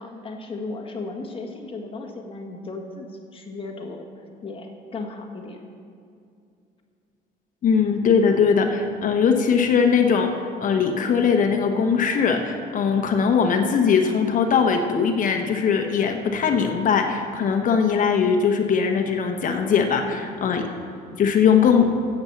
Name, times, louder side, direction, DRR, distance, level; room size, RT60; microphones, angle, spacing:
voice 1, 0.0-5.6, left 3 dB, 30° left, 2 dB, 1.5 m, -35 dB
voice 2, 7.6-10.3 10.6-20.7 21.2-21.9, left 6 dB, 50° left, 5 dB, 1.1 m, -20 dB
8.8 x 8.0 x 7.2 m, 2.4 s
cardioid pair, 110°, 17 cm